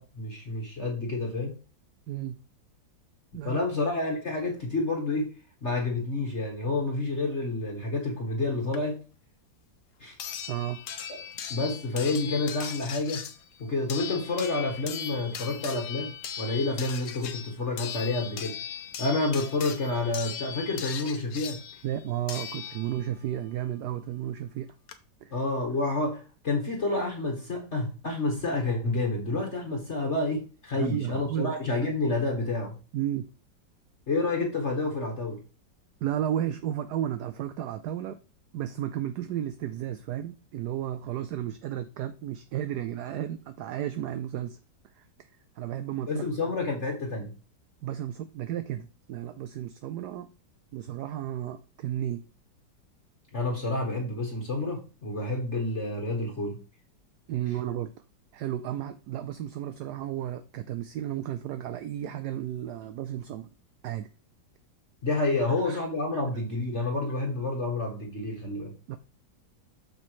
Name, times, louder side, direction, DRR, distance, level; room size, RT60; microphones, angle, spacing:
voice 1, 0.0-1.6 3.4-5.3 5.6-9.0 10.0-10.2 11.1-11.2 11.5-13.3 13.6-18.6 19.0-21.6 25.3-32.8 34.1-35.4 46.1-47.3 53.3-56.6 65.0-68.7, left 2 dB, 40° left, 1.5 m, -29 dB
voice 2, 2.1-2.4 3.3-3.6 10.5-10.8 21.8-24.7 25.2-25.4 30.7-31.6 32.9-33.3 36.0-38.2 38.5-44.6 45.0-45.1 45.6-46.3 47.8-50.3 50.7-52.2 57.3-57.9 58.3-63.5 63.8-64.1 65.6-65.8 68.9-69.0, right 11 dB, 70° right, 1.0 m, -33 dB
sound 1, 8.7-8.8 10.2-23.2 24.5-24.6 24.9-25.0, left 8 dB, 60° left, 1.1 m, -39 dB
6.8 x 6.5 x 3.2 m
omnidirectional pair, 2.0 m